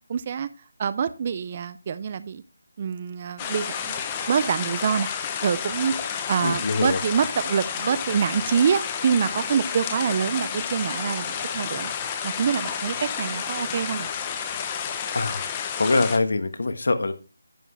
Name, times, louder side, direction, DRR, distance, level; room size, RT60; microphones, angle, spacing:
voice 1, 0.1-0.5 0.8-2.4 2.8-5.1 5.4-11.9 12.2-14.1, right 7 dB, 25° right, 15 dB, 0.4 m, -26 dB
sound 1, 3.4-16.2, left 7 dB, 15° left, 0.7 m, -31 dB
voice 2, 6.4-7.0 15.1-15.4 15.8-17.1, left 3 dB, 60° left, 10 dB, 1.3 m, -23 dB
11.0 x 7.8 x 3.3 m, 0.31 s
figure-of-eight pair, 175°, 0 cm